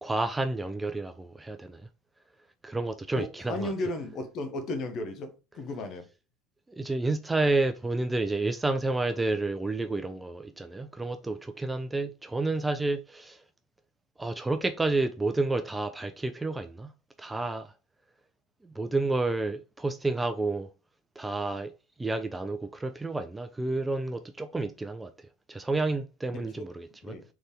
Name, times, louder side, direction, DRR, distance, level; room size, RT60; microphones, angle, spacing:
voice 1, 0.0-1.8 2.6-3.7 6.7-13.4 14.2-16.9 17.2-17.7 18.6-20.7 21.2-21.7 22.0-25.1 25.5-27.2, right 2 dB, 10° right, 0.4 m, -30 dB
voice 2, 3.1-6.1 26.3-26.7 27.0-27.2, left 2 dB, 40° left, 1.0 m, -35 dB
3.9 x 3.3 x 3.6 m
figure-of-eight pair, 75°, 0 cm